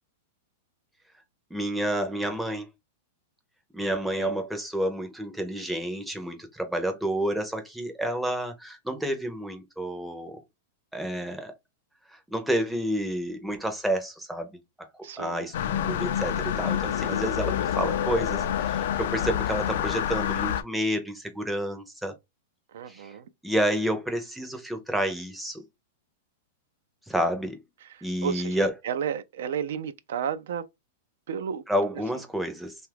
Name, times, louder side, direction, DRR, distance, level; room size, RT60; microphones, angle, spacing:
voice 1, 1.5-2.7 3.7-10.4 10.9-11.5 12.1-14.9 15.2-22.1 22.9-23.1 23.4-25.6 27.1-27.6 28.0-28.7 31.7-32.8, equal, ahead, 0.5 m, -30 dB
voice 2, 15.0-15.5 22.7-23.3 27.8-30.7 31.3-31.6 31.9-32.0, right 8 dB, 75° right, 0.4 m, -33 dB
sound 1, 15.5-20.6, left 9 dB, 65° left, 0.4 m, -27 dB
2.8 x 2.3 x 3.3 m
supercardioid pair, 145°, 0 cm